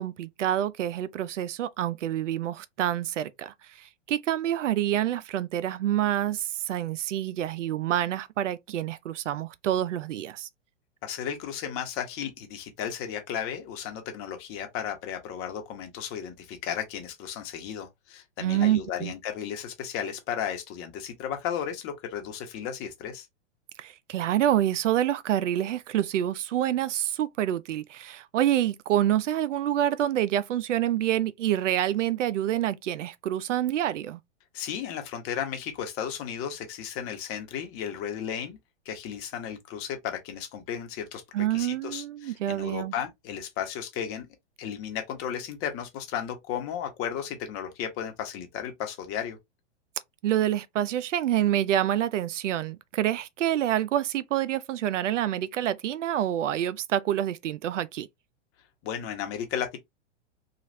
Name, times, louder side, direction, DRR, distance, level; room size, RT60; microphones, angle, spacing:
voice 1, 0.0-3.5 4.1-10.5 18.4-19.1 23.8-34.2 41.3-42.9 50.2-58.1, right 11 dB, 85° right, 0.5 m, -27 dB
voice 2, 11.0-23.3 34.5-38.6 38.8-44.3 44.6-49.4 58.8-59.8, left 8 dB, 40° left, 1.0 m, -34 dB
3.0 x 2.4 x 2.6 m
hypercardioid pair, 115°, 36 cm